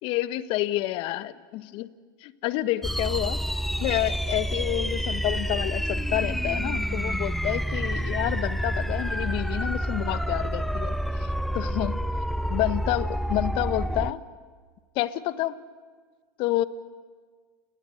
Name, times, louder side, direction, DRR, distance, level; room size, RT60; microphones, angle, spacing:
voice 1, 0.0-1.9 2.2-3.4 3.8-11.3 11.5-12.1 12.5-14.2 14.9-15.6 16.4-16.6, left 15 dB, 55° left, 14 dB, 1.2 m, -29 dB
sound 1, 2.8-14.1, equal, ahead, 0.8 m, -28 dB
30.0 x 19.5 x 7.8 m, 1.5 s
hypercardioid pair, 90°, 11 cm